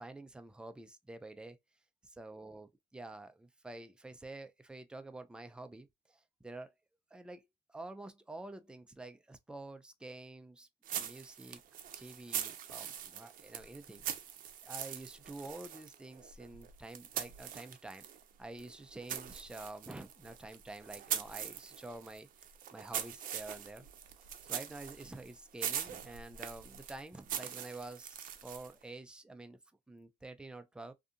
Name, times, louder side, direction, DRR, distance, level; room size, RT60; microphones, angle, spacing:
voice 1, 0.0-1.6 2.0-6.7 7.1-10.7 10.9-11.6 12.0-14.1 14.6-18.0 18.4-22.3 22.7-23.9 24.2-29.6 29.9-30.9, right 2 dB, 5° right, 0.4 m, -48 dB
sound 1, 10.8-18.2 18.6-28.8, right 9 dB, 55° right, 0.5 m, -42 dB
2.6 x 2.4 x 2.4 m
cardioid pair, 110°, 17 cm